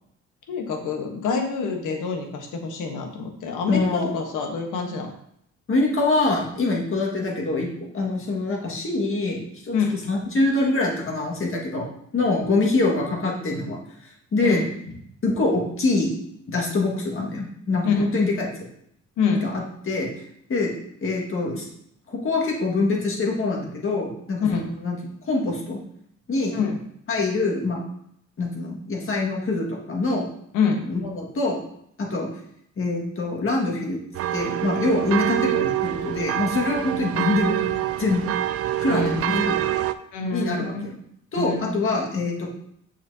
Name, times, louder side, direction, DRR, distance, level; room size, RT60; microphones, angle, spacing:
voice 1, 0.5-5.1 9.7-10.0 14.4-14.6 17.8-18.1 19.2-19.5 24.4-24.7 26.5-26.8 30.5-30.8 38.9-39.2 39.6-39.7 40.1-40.8 41.4-41.7, left 5 dB, 90° left, 3 dB, 1.2 m, -26 dB
voice 2, 3.7-4.1 5.7-7.7 7.9-9.8 10.1-11.9 12.1-14.6 15.2-16.1 16.5-18.5 19.3-20.1 20.5-20.7 21.0-21.7 22.1-25.0 25.3-25.8 26.3-26.6 27.1-27.8 28.4-30.3 30.9-31.6 32.0-32.3 32.8-34.0 34.3-37.6 38.0-38.3 38.8-39.5 40.3-41.0 41.3-42.5, left 2 dB, 45° left, -1 dB, 1.8 m, -24 dB
sound 1, 34.1-39.9, right 12 dB, 50° right, 0.4 m, -25 dB
7.0 x 5.9 x 2.8 m, 0.72 s
cardioid pair, 90°, 30 cm